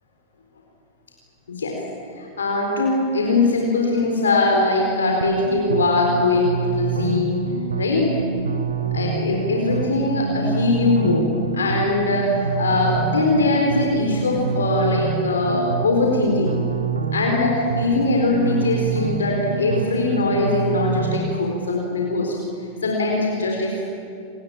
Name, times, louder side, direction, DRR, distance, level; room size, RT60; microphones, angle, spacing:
voice 1, 2.2-7.4 7.8-8.2 8.9-11.3 11.5-16.6 17.1-22.3 22.8-23.8, left 2 dB, 70° left, 0 dB, 4.2 m, -21 dB
sound 1, 5.2-21.2, right 5 dB, 75° right, 1.6 m, -26 dB
28.5 x 19.5 x 8.8 m, 2.5 s
figure-of-eight pair, 90°, 0 cm